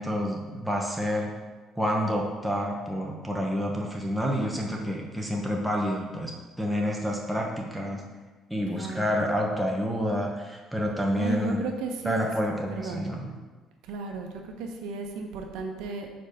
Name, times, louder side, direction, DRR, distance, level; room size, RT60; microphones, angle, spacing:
voice 1, 0.0-1.3 1.8-8.0 8.5-11.6 12.0-13.3, equal, ahead, -1 dB, 1.0 m, -28 dB
voice 2, 8.7-9.3 11.1-12.4 12.7-13.4 13.8-16.1, right 4 dB, 85° right, 3 dB, 0.8 m, -34 dB
4.7 x 4.5 x 5.3 m, 1.3 s
cardioid pair, 130°, 0 cm